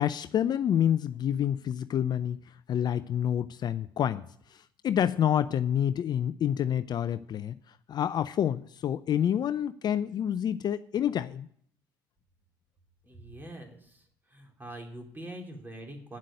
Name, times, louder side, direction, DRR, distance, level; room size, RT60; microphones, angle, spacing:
voice 1, 0.0-2.4 2.7-7.6 7.9-11.5, left 9 dB, 40° left, 14 dB, 0.4 m, -28 dB
voice 2, 13.0-14.0 14.3-16.2, right 1 dB, 20° right, 2 dB, 3.6 m, -44 dB
9.7 x 7.5 x 8.9 m, 0.63 s
hypercardioid pair, 60°, 10 cm